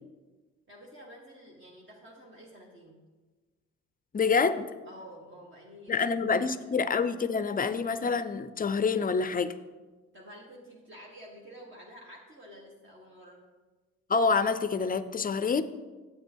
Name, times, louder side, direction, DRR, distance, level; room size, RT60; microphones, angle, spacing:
voice 1, 0.7-3.0 4.9-6.8 10.1-13.4, equal, 40° right, -3 dB, 1.7 m, -50 dB
voice 2, 4.1-4.7 5.9-9.5 14.1-15.6, left 5 dB, 30° left, 13 dB, 0.5 m, -27 dB
8.9 x 8.2 x 4.5 m, 1.3 s
cardioid pair, 90°, 30 cm